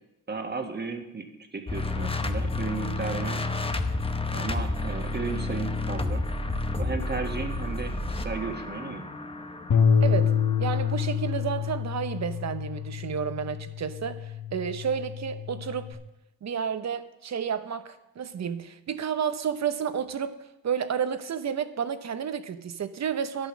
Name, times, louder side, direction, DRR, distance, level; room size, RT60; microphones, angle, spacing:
voice 1, 0.3-1.3 1.5-3.5 4.3-6.2 6.8-9.0, right 4 dB, 30° right, 5 dB, 1.6 m, -34 dB
sound 1, 1.7-11.6, left 2 dB, 15° left, 0.8 m, -31 dB
Bass guitar, 9.7-15.9, left 7 dB, 60° left, 1.4 m, -27 dB
voice 2, 10.0-10.3 10.6-16.0 16.4-20.4 20.6-23.5, right 7 dB, 50° right, 11 dB, 0.9 m, -31 dB
11.0 x 8.6 x 6.2 m, 0.92 s
cardioid pair, 95°, 34 cm